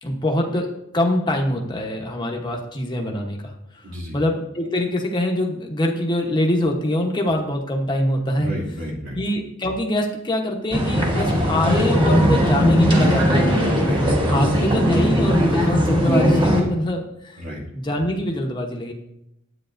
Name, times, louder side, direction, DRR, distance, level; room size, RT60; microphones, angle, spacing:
voice 1, 0.0-3.5 4.1-8.5 9.1-13.9 14.3-17.4 17.7-18.9, left 1 dB, 20° left, 0 dB, 0.9 m, -24 dB
voice 2, 3.8-4.2 8.4-9.2 13.8-14.3 17.4-17.6, equal, 90° right, -5 dB, 2.5 m, -32 dB
sound 1, 10.7-16.6, equal, 25° right, 1.2 m, -18 dB
10.0 x 8.3 x 2.5 m, 0.84 s
head